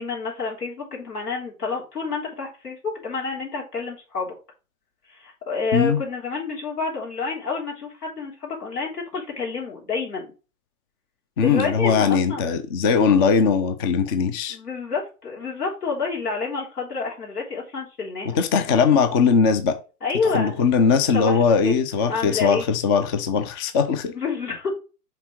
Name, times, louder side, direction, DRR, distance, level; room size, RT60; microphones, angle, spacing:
voice 1, 0.0-4.3 5.1-10.3 11.4-12.4 14.5-18.4 20.0-20.5 21.1-21.7 22.0-22.7 24.1-24.7, left 4 dB, 85° left, 3.6 m, -29 dB
voice 2, 11.4-14.6 18.3-19.8 20.3-24.1, left 6 dB, 20° left, 0.3 m, -20 dB
5.9 x 3.8 x 4.5 m
hypercardioid pair, 115°, 46 cm